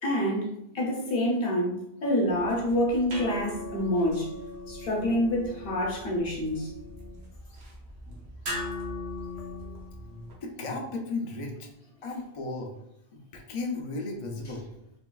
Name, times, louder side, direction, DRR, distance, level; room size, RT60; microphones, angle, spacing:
voice 1, 0.0-4.3 4.7-6.7, left 1 dB, 65° left, -1 dB, 1.0 m, -27 dB
sound 1, 2.3-10.3, left 1 dB, 75° right, 1.0 m, -39 dB
voice 2, 9.4-9.8 10.4-11.7 12.0-12.8 13.1-14.7, left 3 dB, 50° left, 0 dB, 0.4 m, -35 dB
3.5 x 2.3 x 2.2 m, 0.77 s
omnidirectional pair, 1.1 m